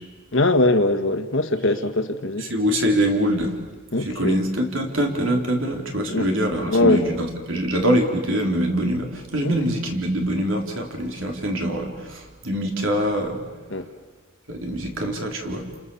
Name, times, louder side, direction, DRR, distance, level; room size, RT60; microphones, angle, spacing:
voice 1, 0.3-2.5 3.9-4.4 6.1-6.3 6.7-7.1 9.4-9.5 13.7-13.9, left 2 dB, 60° left, 1.6 m, -21 dB
voice 2, 2.4-3.5 3.9-13.4 14.5-15.6, equal, 65° right, 3.9 m, -24 dB
30.0 x 27.5 x 7.1 m
head